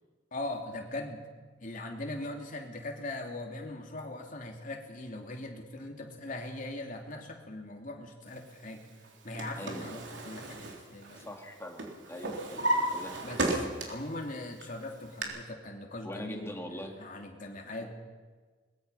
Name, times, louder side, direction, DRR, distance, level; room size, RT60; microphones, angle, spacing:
voice 1, 0.3-1.2 1.6-8.8 9.2-11.2 13.2-17.9, left 2 dB, 45° left, 2 dB, 3.1 m, -40 dB
Drawer open or close, 9.0-11.5 11.8-14.1 14.6-15.2, right 1 dB, 70° right, 3.7 m, -33 dB
voice 2, 9.6-9.9 11.2-13.2 16.0-16.9 17.8-17.9, left 1 dB, 15° left, 2 dB, 2.5 m, -42 dB
22.0 x 21.5 x 5.8 m, 1.4 s
head